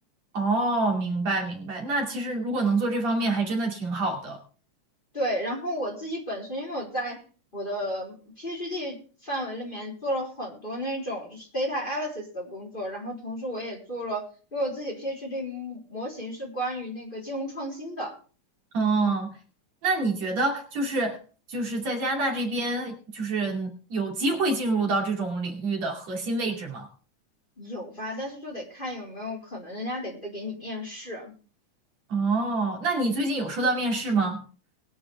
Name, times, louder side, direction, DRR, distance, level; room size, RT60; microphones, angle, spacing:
voice 1, 0.3-4.4 18.7-19.3 19.8-21.2 21.5-26.9 32.1-34.4, right 2 dB, 60° right, 1 dB, 3.7 m, -26 dB
voice 2, 5.1-7.2 7.5-9.0 9.2-14.3 14.5-18.2 27.6-31.3, equal, 15° left, -1 dB, 4.0 m, -33 dB
22.0 x 8.5 x 3.5 m, 0.38 s
omnidirectional pair, 3.6 m